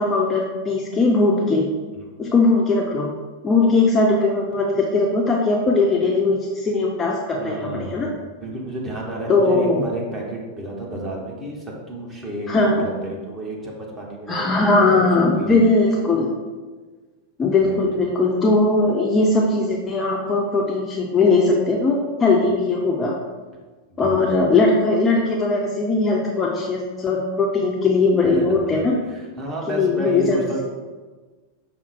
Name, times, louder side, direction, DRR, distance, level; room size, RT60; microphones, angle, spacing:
voice 1, 0.0-1.7 2.2-3.1 3.4-8.1 9.3-9.8 12.5-12.9 14.3-16.3 17.4-23.1 24.0-29.0 29.7-30.4, left 3 dB, 20° left, -2 dB, 0.5 m, -19 dB
voice 2, 7.3-8.1 8.4-12.5 12.8-15.1 15.3-15.7 17.6-17.8 23.9-24.4 28.2-30.6, right 1 dB, 15° right, -3 dB, 1.1 m, -31 dB
5.6 x 2.1 x 4.5 m, 1.3 s
figure-of-eight pair, 90°, 0 cm